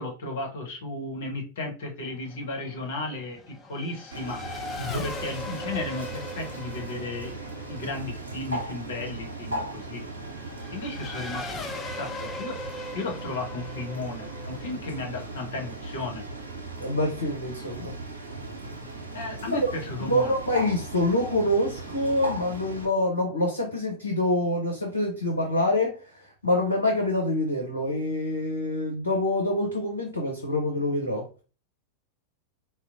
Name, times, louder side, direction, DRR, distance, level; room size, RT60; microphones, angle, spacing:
voice 1, 0.0-4.4 4.9-7.3 7.7-10.0 10.7-12.5 12.9-16.2 19.1-20.5, left 2 dB, 60° left, 0 dB, 1.2 m, -34 dB
Race car auto racing / Accelerating revving vroom, 2.0-16.1, left 2 dB, 20° left, 0.5 m, -40 dB
Bird, 4.1-22.9, right 2 dB, 80° right, 0.8 m, -37 dB
voice 2, 16.8-17.9 19.5-19.7 20.0-31.4, left 1 dB, 80° left, 0 dB, 0.8 m, -26 dB
4.3 x 2.1 x 2.6 m, 0.35 s
figure-of-eight pair, 90°, 0 cm